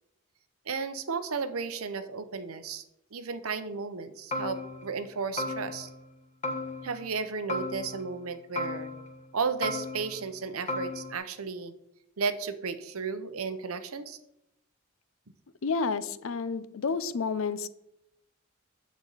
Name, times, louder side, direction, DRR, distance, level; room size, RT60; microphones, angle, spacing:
voice 1, 0.7-2.8 3.1-5.9 6.8-8.9 9.3-11.7 12.2-14.2, right 5 dB, 90° right, 11 dB, 0.8 m, -34 dB
sound 1, 4.3-5.0 5.4-6.1 6.4-7.2 7.5-8.3 8.6-9.3 9.6-10.4 10.7-11.1, left 2 dB, 30° left, 1.3 m, -35 dB
voice 2, 15.6-17.7, left 4 dB, 65° left, 15 dB, 0.6 m, -30 dB
9.5 x 7.8 x 4.0 m, 0.84 s
head